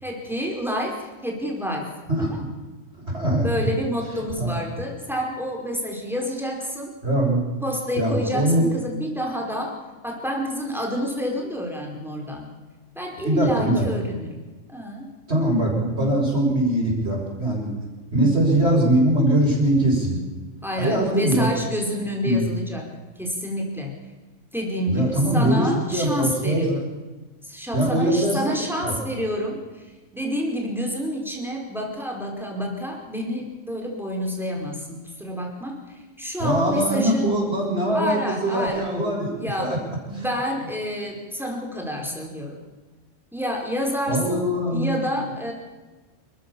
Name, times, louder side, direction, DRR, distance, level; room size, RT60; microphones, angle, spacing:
voice 1, 0.0-1.9 2.2-2.5 3.4-6.9 7.6-12.5 12.9-15.1 18.2-18.3 20.6-22.9 23.2-24.0 24.5-26.8 27.4-29.6 30.1-35.8 36.2-37.3 37.9-38.9 39.4-39.8 40.1-42.6 43.3-45.5, equal, ahead, 0 dB, 4.9 m, -29 dB
voice 2, 3.0-3.5 4.4-4.6 7.0-7.4 8.0-8.6 13.2-13.9 15.3-17.7 18.1-20.2 20.8-21.5 22.2-22.4 24.9-26.8 27.7-28.4 28.8-28.9 36.4-39.8 40.1-40.3 44.1-44.9, right 1 dB, 55° right, -2 dB, 7.6 m, -22 dB
28.5 x 14.0 x 7.2 m, 1.2 s
omnidirectional pair, 1.3 m